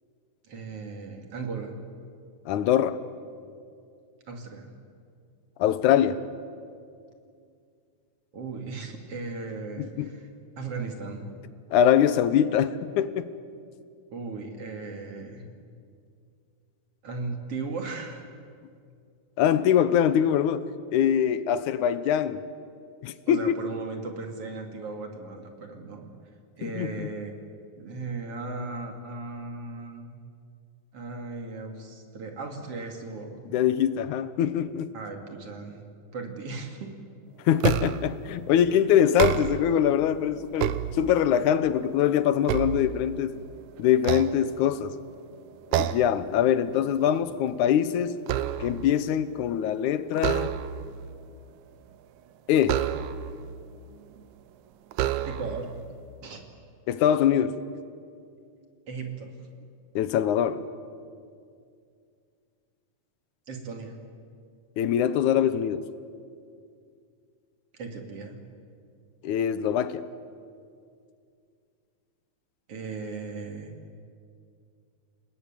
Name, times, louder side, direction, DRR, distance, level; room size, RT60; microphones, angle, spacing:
voice 1, 0.4-1.7 4.3-4.7 8.3-10.3 10.6-11.3 14.1-15.5 17.0-18.3 23.3-26.1 26.6-27.3 27.8-30.1 30.9-33.4 34.9-35.8 36.1-36.9 55.2-55.7 56.2-56.4 58.9-59.3 63.5-64.0 67.7-68.4 72.7-73.7, right 4 dB, 50° right, 3 dB, 3.4 m, -37 dB
voice 2, 2.5-3.0 5.6-6.2 9.8-10.1 11.7-13.3 19.4-20.7 20.9-22.4 23.0-23.6 26.6-27.1 33.5-34.9 37.5-43.4 43.8-44.9 45.8-48.2 48.6-50.6 52.5-52.8 56.9-57.6 60.0-60.6 64.8-65.8 69.2-70.0, left 9 dB, 85° left, 14 dB, 2.4 m, -23 dB
sound 1, 37.6-38.2 39.0-39.8 40.3-41.4 41.9-43.4 44.0-45.0 45.7-46.2 46.6-46.9 47.2-48.9 50.1-51.0 52.6-53.4 54.2-54.3 54.9-55.7, right 11 dB, 80° right, 2.2 m, -29 dB
29.0 x 19.0 x 9.0 m, 2.3 s
omnidirectional pair, 3.4 m